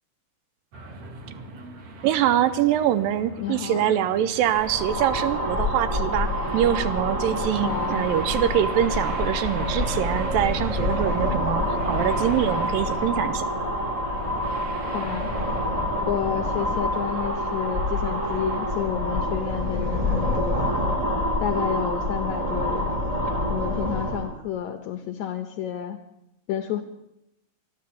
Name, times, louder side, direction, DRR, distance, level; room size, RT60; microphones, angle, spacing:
sound 1, 0.7-20.4, right 3 dB, 50° right, 2.3 m, -40 dB
voice 1, 2.0-13.5, right 11 dB, 80° right, 12 dB, 2.4 m, -24 dB
voice 2, 3.4-4.0 7.6-8.1 14.9-15.3 16.0-20.7 21.4-22.9 23.5-26.0 26.5-26.8, left 10 dB, 75° left, 7 dB, 1.8 m, -30 dB
sound 2, 4.5-24.3, left 1 dB, 35° right, 0.5 m, -27 dB
12.5 x 11.5 x 8.6 m, 0.86 s
omnidirectional pair, 4.1 m